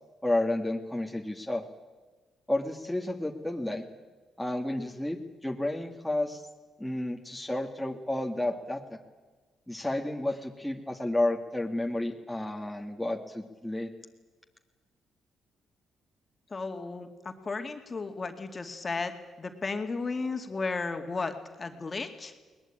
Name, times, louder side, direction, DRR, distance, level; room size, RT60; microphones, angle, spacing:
voice 1, 0.2-1.6 2.5-3.8 4.4-5.2 5.4-6.4 6.8-9.0 9.7-13.9, left 1 dB, 5° left, 2 dB, 2.0 m, -31 dB
voice 2, 16.5-19.1 19.4-22.3, left 4 dB, 30° left, 6 dB, 2.4 m, -34 dB
21.5 x 20.0 x 8.9 m, 1.3 s
cardioid pair, 90°, 0 cm